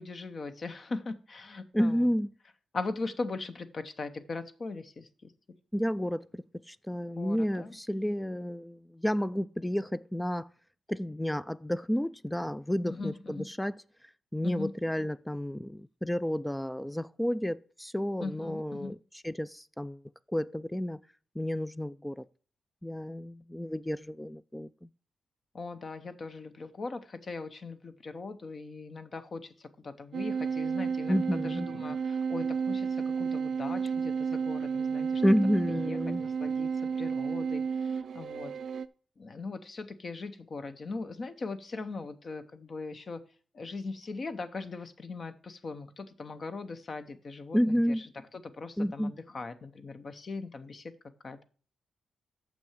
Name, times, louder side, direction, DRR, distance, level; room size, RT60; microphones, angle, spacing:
voice 1, 0.0-2.1 2.7-5.3 7.2-7.8 12.9-13.5 14.4-14.7 18.2-19.0 25.5-35.2 35.8-38.5 39.2-43.2 43.5-50.9 51.2-51.4, left 3 dB, 45° left, 0.8 m, -40 dB
voice 2, 1.7-2.3 5.7-10.5 10.9-13.8 14.3-19.0 19.2-20.0 20.3-21.0 21.4-22.3 22.8-24.9 31.1-31.7 35.2-36.2 47.5-48.0 48.8-49.1, equal, 5° left, 0.3 m, -31 dB
Viola C drone long, 30.1-38.9, right 6 dB, 70° right, 0.4 m, -32 dB
6.7 x 6.0 x 7.3 m
cardioid pair, 105°, 0 cm